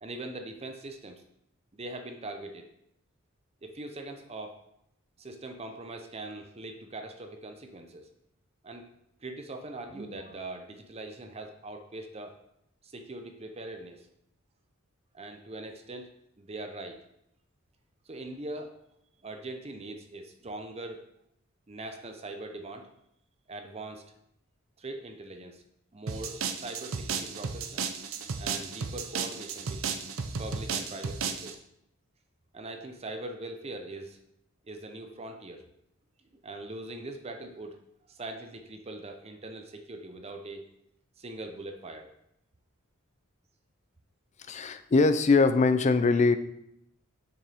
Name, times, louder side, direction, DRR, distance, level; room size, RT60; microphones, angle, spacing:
voice 1, 0.0-1.2 1.7-2.7 3.6-4.6 5.2-8.1 8.6-8.9 9.2-12.3 12.8-14.1 15.1-16.1 16.4-17.0 18.1-18.8 19.2-21.0 21.7-22.9 23.5-24.0 24.8-25.6 25.9-30.0 30.4-31.6 32.5-34.2 34.6-35.6 36.3-37.8 38.1-40.6 41.2-42.1, right 2 dB, 30° right, 5 dB, 0.6 m, -41 dB
sound 1, 26.1-31.5, right 5 dB, 70° right, 0.6 m, -34 dB
voice 2, 44.5-46.4, left 3 dB, 35° left, 10 dB, 0.4 m, -22 dB
7.0 x 6.1 x 3.4 m, 0.78 s
head